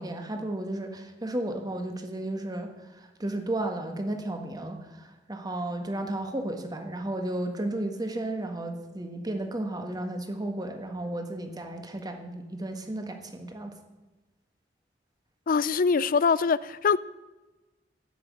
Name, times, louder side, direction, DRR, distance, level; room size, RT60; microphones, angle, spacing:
voice 1, 0.0-13.7, right 1 dB, 20° right, 1.6 m, -33 dB
voice 2, 15.5-17.0, left 5 dB, 50° left, 0.4 m, -23 dB
13.5 x 6.1 x 9.0 m
head